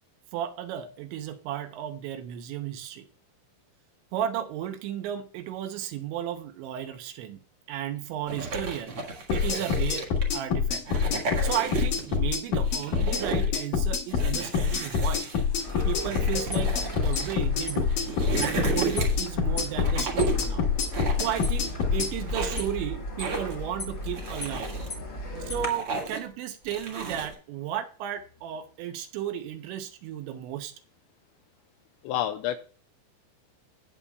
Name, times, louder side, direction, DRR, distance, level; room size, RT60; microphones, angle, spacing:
voice 1, 0.3-3.1 4.1-7.4 7.7-9.0 9.3-10.1 10.3-10.8 11.2-18.0 18.4-20.7 21.2-24.8 25.5-30.7, right 10 dB, 80° right, 7 dB, 3.1 m, -34 dB
sound 1, 8.3-10.4 10.8-12.2 12.5-13.5 14.1-17.4 17.8-19.3 19.8-20.5 20.9-21.8 22.2-22.8 23.2-23.6 24.0-24.9 25.4-26.3 26.7-27.3, right 4 dB, 55° right, 1.6 m, -34 dB
sound 2, 9.3-22.1, left 6 dB, 60° left, 2.3 m, -26 dB
sound 3, 15.6-25.7, left 1 dB, 45° left, 1.1 m, -35 dB
voice 2, 20.9-21.2 32.0-32.6, left 12 dB, 85° left, 6 dB, 2.6 m, -30 dB
18.0 x 6.7 x 2.3 m, 0.40 s
omnidirectional pair, 5.4 m